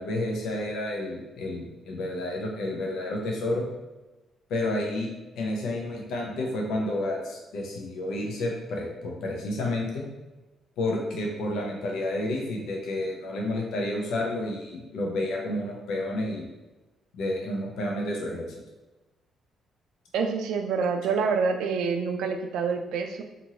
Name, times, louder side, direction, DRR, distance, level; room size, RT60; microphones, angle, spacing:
voice 1, 0.0-3.6 4.5-5.1 5.4-10.0 10.8-16.5 17.1-18.5, left 1 dB, 85° left, -1 dB, 0.5 m, -30 dB
voice 2, 20.1-23.2, right 5 dB, 85° right, 5 dB, 0.3 m, -27 dB
2.9 x 2.5 x 2.7 m, 1.1 s
cardioid pair, 90°, 0 cm